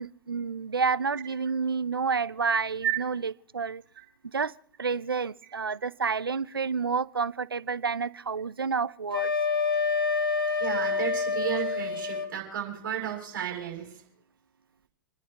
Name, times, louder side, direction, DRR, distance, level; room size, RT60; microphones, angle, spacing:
voice 1, 0.0-3.8 4.2-4.5 4.8-9.3, right 5 dB, 85° right, 18 dB, 0.5 m, -29 dB
Wind instrument woodwind instrument, 9.1-12.3, left 4 dB, 75° left, 1.7 m, -27 dB
voice 2, 10.6-14.0, right 10 dB, 60° right, -2 dB, 6.3 m, -32 dB
30.0 x 10.5 x 2.9 m, 0.64 s
figure-of-eight pair, 105°, 12 cm